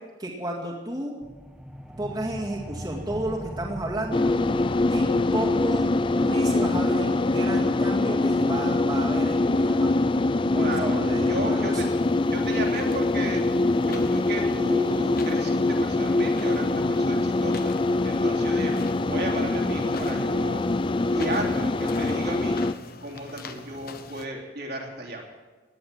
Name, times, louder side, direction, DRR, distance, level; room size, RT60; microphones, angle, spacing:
voice 1, 0.2-1.1 2.0-4.3 4.9-10.0 10.5-11.8, right 1 dB, 25° right, -3 dB, 2.2 m, -32 dB
sound 1, 1.2-12.3, equal, 5° right, 0.9 m, -42 dB
sound 2, 4.1-22.7, left 2 dB, 25° left, 0.4 m, -24 dB
voice 2, 10.6-11.9 12.3-13.4 13.8-17.7 18.0-18.8 19.0-20.6 21.0-22.6 23.0-25.2, right 1 dB, 60° right, -1 dB, 3.1 m, -34 dB
sound 3, 11.8-24.3, left 3 dB, 55° left, 1.1 m, -44 dB
18.0 x 10.5 x 7.4 m, 1.3 s
head